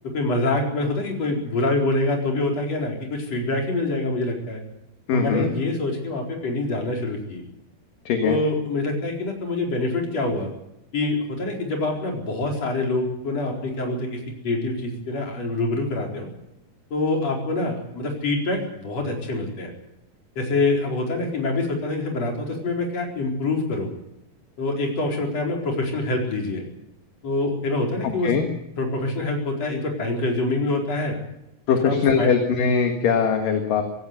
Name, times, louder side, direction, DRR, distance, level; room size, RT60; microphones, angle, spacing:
voice 1, 0.0-4.6 5.1-7.4 8.2-10.5 10.9-16.3 16.9-19.7 20.4-23.9 24.6-26.7 27.2-28.3 28.8-31.2 31.8-32.3, left 2 dB, 40° left, 1 dB, 5.3 m, -25 dB
voice 2, 5.1-5.5 8.1-8.4 28.2-28.5 31.7-33.8, left 6 dB, 65° left, 5 dB, 3.2 m, -21 dB
17.5 x 17.0 x 9.3 m, 0.86 s
omnidirectional pair, 4.4 m